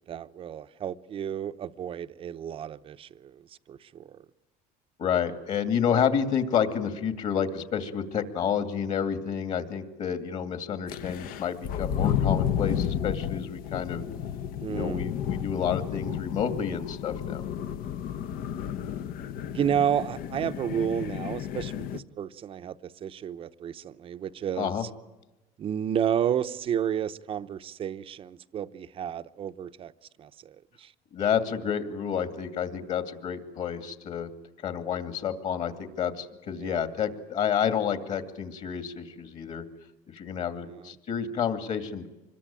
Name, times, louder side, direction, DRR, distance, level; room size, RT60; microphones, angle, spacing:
voice 1, 0.0-3.4 3.7-4.2 14.6-15.0 19.5-24.9 25.6-29.9 30.2-30.9 36.6-36.8 40.7-40.9, right 9 dB, 35° right, 0.8 m, -31 dB
voice 2, 5.0-14.0 14.7-17.4 24.6-24.8 31.1-34.3 34.6-39.6 40.1-42.1, left 8 dB, 45° left, 2.5 m, -29 dB
sound 1, 10.9-22.0, left 9 dB, 60° left, 1.0 m, -32 dB
26.0 x 21.5 x 8.9 m
cardioid pair, 155°, 17 cm